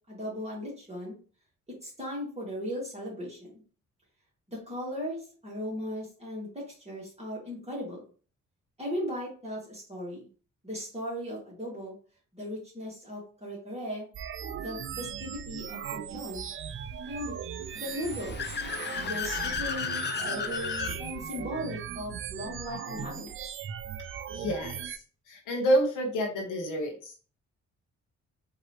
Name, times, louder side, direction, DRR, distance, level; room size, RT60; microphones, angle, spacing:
voice 1, 0.1-1.2 1.8-3.6 4.5-8.0 8.8-10.3 10.6-11.9 12.3-14.1 14.6-16.5 17.0-17.4 17.7-18.5 19.0-23.5, equal, 20° right, -5 dB, 2.1 m, -37 dB
sound 1, 14.1-25.0, right 8 dB, 45° right, 0.4 m, -38 dB
Car / Accelerating revving vroom, 17.7-21.0, left 6 dB, 35° left, 0.5 m, -34 dB
voice 2, 24.3-25.0 25.3-27.3, equal, 85° left, 0 dB, 1.0 m, -28 dB
4.6 x 2.9 x 3.0 m, 0.40 s
cardioid pair, 85°, 30 cm